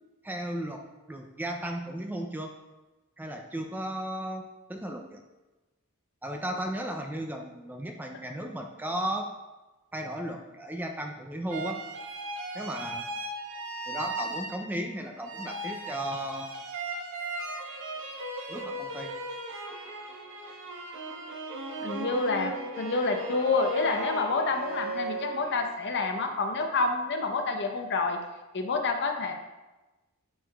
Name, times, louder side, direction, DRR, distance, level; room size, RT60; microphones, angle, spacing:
voice 1, 0.2-0.8 1.1-2.5 3.2-5.2 6.2-9.3 9.9-11.8 12.5-13.1 13.9-16.5 18.5-19.2, right 1 dB, 10° right, 3 dB, 0.3 m, -35 dB
sound 1, 11.5-14.9 15.2-25.9, right 2 dB, 60° right, 0.8 m, -37 dB
voice 2, 21.8-28.2 28.5-29.3, left 3 dB, 50° left, 4 dB, 0.7 m, -28 dB
9.7 x 4.7 x 2.3 m, 1.1 s
head